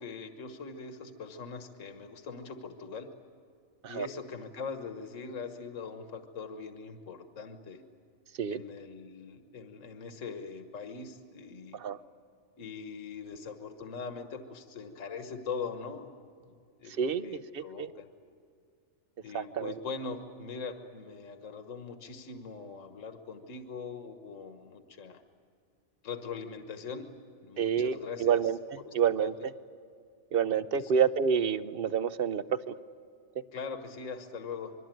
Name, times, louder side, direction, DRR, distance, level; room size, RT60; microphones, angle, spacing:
voice 1, 0.0-3.1 3.9-7.8 8.5-11.8 12.6-16.1 16.4-18.1 19.2-25.2 26.0-27.1 27.4-28.6 28.8-29.3 30.7-30.9 33.5-34.7, left 5 dB, 70° left, 7 dB, 1.6 m, -41 dB
voice 2, 17.0-17.9 19.3-19.7 27.6-28.6 28.9-29.3 30.3-32.4, right 7 dB, 50° right, 14 dB, 0.9 m, -28 dB
25.5 x 22.5 x 9.1 m, 2.3 s
omnidirectional pair, 1.4 m